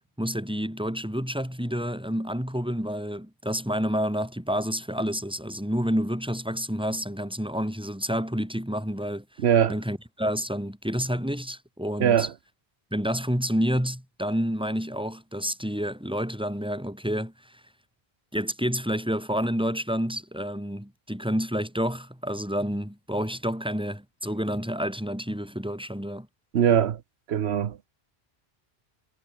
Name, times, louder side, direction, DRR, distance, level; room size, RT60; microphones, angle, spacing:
voice 1, 0.2-9.2 9.7-12.3 12.9-17.6 18.3-26.3, equal, 5° right, 5.0 m, -29 dB
voice 2, 9.4-9.8 12.0-12.3 26.5-27.0 27.3-27.9, right 9 dB, 90° right, 1.1 m, -21 dB
omnidirectional pair, 1.1 m